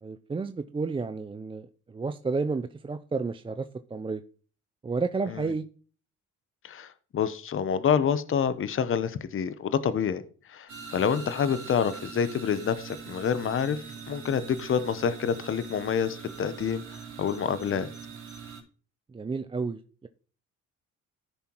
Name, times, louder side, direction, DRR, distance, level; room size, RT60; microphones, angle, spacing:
voice 1, 0.0-4.2 4.8-5.6 19.1-20.1, right 4 dB, 20° right, 10 dB, 0.4 m, -31 dB
voice 2, 6.6-10.2 10.5-17.9, left 7 dB, 45° left, 14 dB, 0.8 m, -27 dB
sound 1, 10.7-18.6, right 5 dB, 80° right, 3.2 m, -42 dB
14.0 x 5.6 x 3.0 m, 0.41 s
cardioid pair, 90°, 30 cm